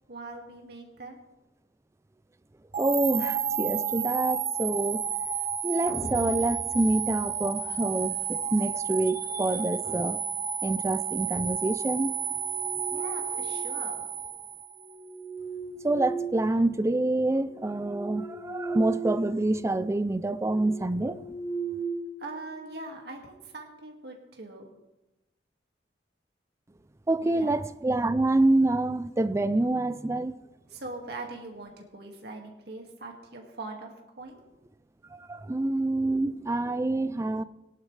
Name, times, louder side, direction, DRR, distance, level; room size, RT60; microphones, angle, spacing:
voice 1, 0.1-1.2 12.9-14.0 22.2-24.7 27.2-27.5 30.7-34.4, right 2 dB, 60° right, 2.1 m, -42 dB
sound 1, 2.7-14.9, right 8 dB, 35° right, 0.8 m, -31 dB
voice 2, 2.8-5.1 5.6-10.2 10.6-12.2 15.8-21.4 27.1-30.4 35.1-37.4, right 2 dB, 15° right, 0.3 m, -27 dB
sound 2, 5.9-8.2, left 1 dB, 30° left, 0.8 m, -39 dB
sound 3, 12.3-13.8 14.8-17.0 17.4-19.3 19.6-19.8 20.3-22.7, right 4 dB, 90° right, 3.4 m, -37 dB
17.5 x 11.0 x 3.3 m
head